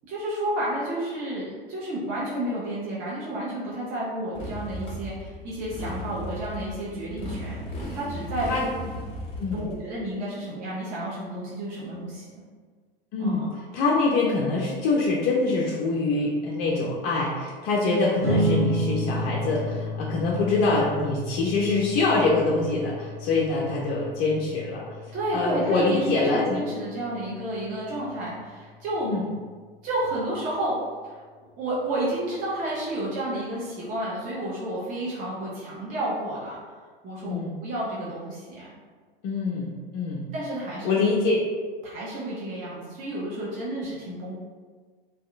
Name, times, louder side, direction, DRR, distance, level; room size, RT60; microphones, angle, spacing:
voice 1, 0.1-8.7 9.5-12.3 13.2-13.5 25.1-29.1 29.8-30.8 31.0-31.2 31.6-36.6 37.0-38.7 40.3-41.2 41.8-44.4, right 1 dB, 30° right, -7 dB, 0.6 m, -31 dB
Motorcycle, 4.4-9.8, equal, 20° left, 0.8 m, -36 dB
voice 2, 13.1-13.5 13.7-26.6 29.0-29.2 37.3-37.6 39.2-40.2 40.8-41.4, left 3 dB, 35° left, -4 dB, 0.4 m, -25 dB
sound 1, 18.2-29.0, equal, 90° right, 0.6 m, -32 dB
2.6 x 2.1 x 2.4 m, 1.5 s
figure-of-eight pair, 85°, 29 cm